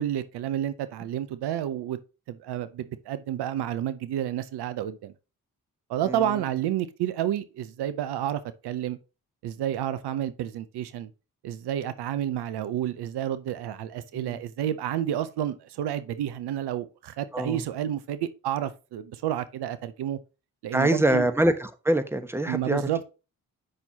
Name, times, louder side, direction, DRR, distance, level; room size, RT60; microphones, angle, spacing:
voice 1, 0.0-2.0 2.3-5.1 5.9-9.0 9.4-11.1 11.4-20.2 20.6-21.3 22.5-23.0, right 11 dB, 70° right, 0.7 m, -30 dB
voice 2, 20.7-22.8, right 1 dB, 5° right, 1.1 m, -24 dB
7.6 x 6.0 x 2.8 m
hypercardioid pair, 40°, 40 cm